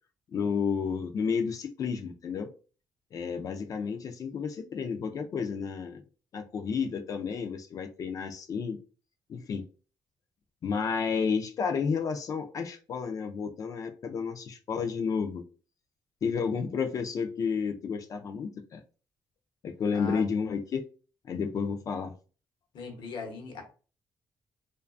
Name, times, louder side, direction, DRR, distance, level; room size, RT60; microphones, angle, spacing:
voice 1, 0.3-2.5 3.1-6.0 6.3-8.8 9.3-9.6 10.6-15.4 16.2-18.8 19.6-20.8 21.3-22.1, left 6 dB, 45° left, 6 dB, 0.3 m, -31 dB
voice 2, 22.7-23.6, left 4 dB, 80° left, 3 dB, 0.8 m, -39 dB
2.3 x 2.2 x 2.4 m, 0.36 s
cardioid pair, 125°, 8 cm